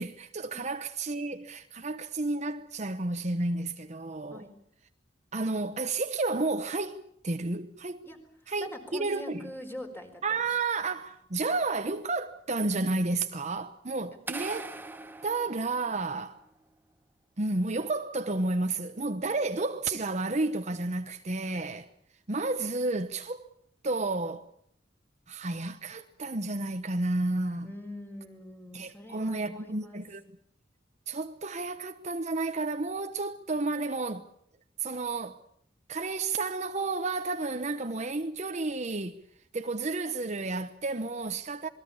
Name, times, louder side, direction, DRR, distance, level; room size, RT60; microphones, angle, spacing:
voice 1, 0.0-4.5 5.3-8.1 8.5-9.5 10.2-14.7 15.2-16.4 17.4-21.9 22.3-23.5 23.8-24.5 25.3-27.7 28.7-30.2 31.1-34.2 34.8-35.4 35.9-39.2 39.5-41.7, right 3 dB, 40° right, 1.0 m, -31 dB
voice 2, 8.6-10.5 27.6-30.0, left 1 dB, 10° left, 4.5 m, -44 dB
sound 1, 14.3-16.4, right 3 dB, 10° right, 1.1 m, -41 dB
27.5 x 21.0 x 7.1 m
head